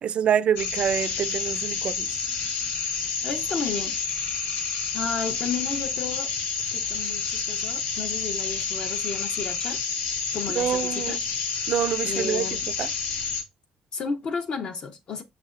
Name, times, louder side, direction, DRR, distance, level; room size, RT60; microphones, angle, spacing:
voice 1, 0.0-2.1 10.6-11.2 11.7-12.4 12.8-12.9, right 8 dB, 50° right, 0.4 m, -26 dB
sound 1, 0.6-13.4, left 5 dB, 85° left, 1.1 m, -29 dB
voice 2, 3.2-4.0 4.9-6.3 6.7-9.8 10.3-11.2 12.0-12.7 13.9-15.2, left 5 dB, 45° left, 0.6 m, -32 dB
6.4 x 3.2 x 2.5 m
cardioid pair, 135°, 3 cm